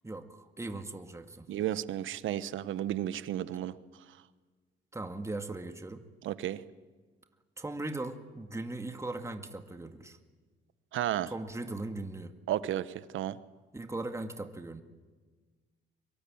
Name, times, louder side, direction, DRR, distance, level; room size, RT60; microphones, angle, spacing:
voice 1, 0.0-1.5 4.9-6.0 7.6-10.2 11.3-12.3 13.7-14.8, right 2 dB, 15° right, 7 dB, 2.1 m, -39 dB
voice 2, 1.5-3.7 6.2-6.6 10.9-11.3 12.5-13.4, right 12 dB, 80° right, 15 dB, 1.2 m, -33 dB
24.5 x 23.0 x 8.8 m, 1.4 s
cardioid pair, 90°, 20 cm